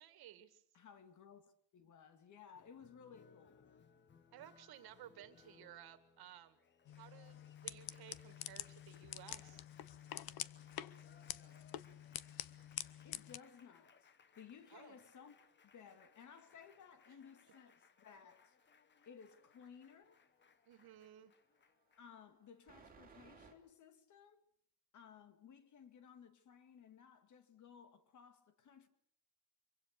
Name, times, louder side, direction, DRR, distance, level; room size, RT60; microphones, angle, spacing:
voice 1, 0.0-0.6 4.3-6.6 7.0-9.6 14.7-15.0 20.7-21.3, right 12 dB, 65° right, 2.2 m, -57 dB
voice 2, 0.7-1.4 1.7-3.7 13.0-15.4 15.7-18.6 19.1-20.2 22.0-24.4 24.9-28.9, left 7 dB, 45° left, 2.3 m, -59 dB
Applause, 2.6-22.2, left 5 dB, 25° left, 1.2 m, -68 dB
sound 1, 6.9-13.4, left 13 dB, 60° left, 0.9 m, -48 dB
sound 2, 11.6-13.7 14.0-23.5, right 5 dB, 20° right, 3.2 m, -69 dB
25.0 x 24.0 x 6.7 m
cardioid pair, 170°, 40 cm